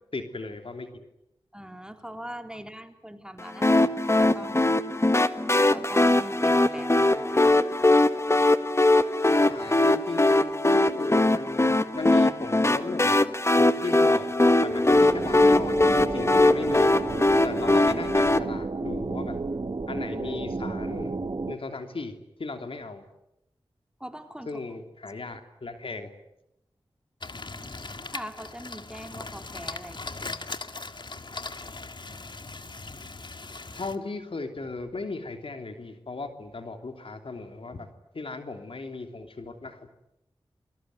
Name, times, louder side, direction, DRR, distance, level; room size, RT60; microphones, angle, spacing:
voice 1, 0.1-1.1 9.2-13.2 13.6-14.4 14.6-17.0 17.4-19.4 19.9-21.1 21.5-23.0 24.4-26.1 33.7-37.9 38.1-39.9, left 3 dB, 70° left, 6 dB, 3.1 m, -36 dB
voice 2, 1.5-4.9 5.7-7.4 24.0-24.6 27.9-30.6, equal, 10° right, 6 dB, 3.7 m, -42 dB
sound 1, 3.6-18.4, left 2 dB, 30° left, 1.6 m, -21 dB
sound 2, 14.9-21.6, right 3 dB, 50° right, 1.2 m, -32 dB
sound 3, 27.2-34.0, left 3 dB, 55° left, 1.8 m, -39 dB
28.5 x 21.5 x 9.4 m, 0.85 s
cardioid pair, 45°, 10 cm